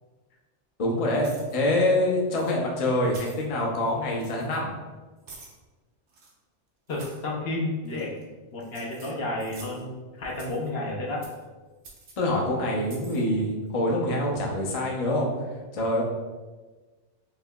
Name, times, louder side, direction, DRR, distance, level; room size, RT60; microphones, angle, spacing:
voice 1, 0.8-4.7 12.2-15.3 15.7-16.0, left 1 dB, 40° left, -2 dB, 0.6 m, -25 dB
sound 1, 1.2-1.6 2.4-2.5 3.0-3.5 4.1-4.6 5.3-5.6 6.1-6.3 6.9-7.2 7.9-8.2 8.6-9.8 10.3-10.7 11.2-11.4 11.8-12.1 12.8-13.2, right 3 dB, 80° right, 1.1 m, -48 dB
voice 2, 6.9-8.2 8.5-11.2, left 2 dB, 60° left, -3 dB, 0.9 m, -31 dB
5.5 x 2.8 x 2.2 m, 1.3 s
omnidirectional pair, 1.2 m